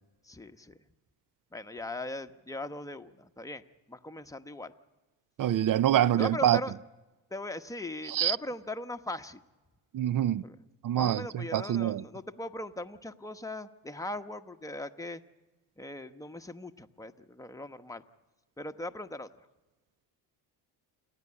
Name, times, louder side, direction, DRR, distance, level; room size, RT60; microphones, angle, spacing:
voice 1, 0.2-0.8 1.5-4.7 6.2-6.7 7.3-9.4 10.4-10.6 10.9-15.2 15.8-18.0 18.6-19.3, left 2 dB, 5° left, 1.0 m, -39 dB
voice 2, 5.4-6.6 8.1-8.4 9.9-10.4 10.8-12.0, right 11 dB, 40° right, 0.6 m, -26 dB
28.5 x 10.0 x 9.7 m
supercardioid pair, 70°, 50 cm